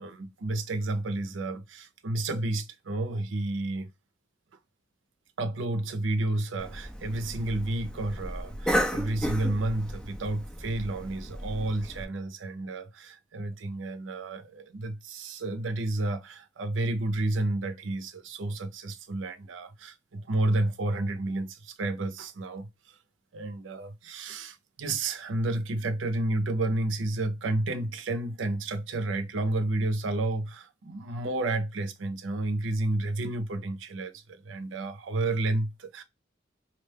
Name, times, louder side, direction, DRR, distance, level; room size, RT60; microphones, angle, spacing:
voice 1, 0.0-3.9 5.4-22.7 23.3-36.0, right 2 dB, 90° right, 0.5 m, -31 dB
Cough, 6.6-12.0, equal, 5° left, 0.4 m, -34 dB
2.4 x 2.2 x 3.3 m
head